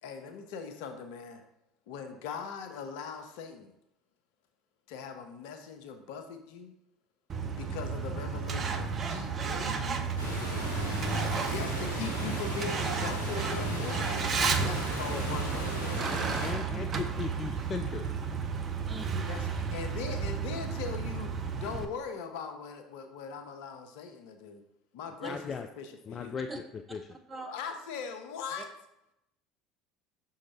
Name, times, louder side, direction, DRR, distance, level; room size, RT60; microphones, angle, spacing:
voice 1, 0.0-1.4 1.9-3.7 4.9-6.7 7.6-10.1 11.3-14.2 14.6-16.1 19.3-21.3 21.6-24.6 24.9-26.4 27.3-28.7, left 6 dB, 65° left, 6 dB, 0.7 m, -40 dB
Truck, 7.3-21.8, right 5 dB, 35° right, 0.6 m, -32 dB
Water, 10.2-16.5, equal, 80° right, 1.9 m, -37 dB
voice 2, 16.1-18.1 25.3-25.7 26.1-26.5 26.9-27.0, left 5 dB, 35° left, 6 dB, 0.4 m, -37 dB
voice 3, 26.9-27.5 28.6-28.7, right 2 dB, 15° right, 4 dB, 0.9 m, -43 dB
6.2 x 3.7 x 4.3 m, 0.82 s
figure-of-eight pair, 65°, 0 cm